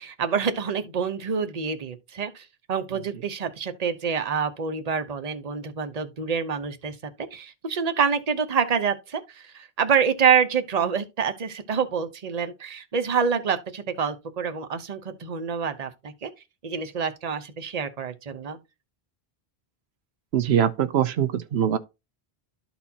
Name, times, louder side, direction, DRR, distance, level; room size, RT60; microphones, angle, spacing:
voice 1, 0.0-16.3 16.6-18.6, right 6 dB, 40° right, 0.9 m, -27 dB
voice 2, 20.3-21.8, right 9 dB, 85° right, 0.9 m, -22 dB
13.0 x 4.3 x 2.8 m
omnidirectional pair, 1.0 m